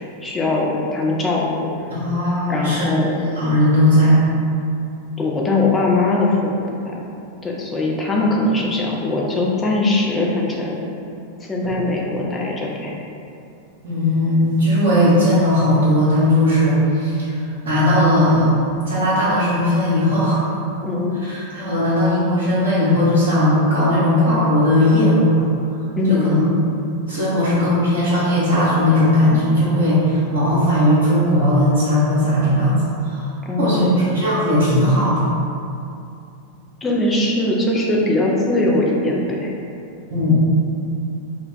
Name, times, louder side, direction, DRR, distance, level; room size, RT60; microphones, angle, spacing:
voice 1, 0.2-1.5 2.5-3.2 5.2-7.0 7.4-10.8 11.4-12.9 20.8-21.2 26.0-26.5 33.5-34.1 36.8-39.5, left 2 dB, 15° left, -3 dB, 0.5 m, -21 dB
voice 2, 1.9-3.0 3.3-4.2 11.6-11.7 13.8-17.4 17.6-18.5 18.9-20.4 21.2-25.4 26.1-26.4 27.1-33.3 33.6-35.2 40.1-40.4, left 1 dB, 60° right, -10 dB, 0.7 m, -17 dB
2.2 x 2.2 x 3.8 m, 2.6 s
figure-of-eight pair, 90°, 0 cm